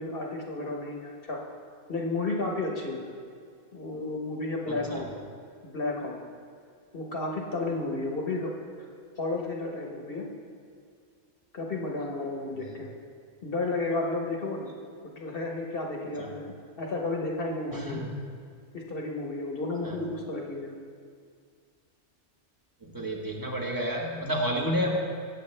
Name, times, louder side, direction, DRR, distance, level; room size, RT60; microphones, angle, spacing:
voice 1, 0.0-1.4 1.9-3.0 3.7-5.1 5.6-6.2 6.9-8.5 9.2-10.3 11.5-12.9 13.4-14.7 15.2-18.0 18.7-20.7, left 2 dB, 55° left, 0 dB, 1.2 m, -32 dB
voice 2, 4.6-5.1 12.6-12.8 16.2-16.3 17.7-18.2 19.8-20.0 22.8-25.0, equal, 20° right, -1 dB, 1.3 m, -31 dB
17.0 x 7.6 x 3.3 m, 2.2 s
omnidirectional pair, 1.2 m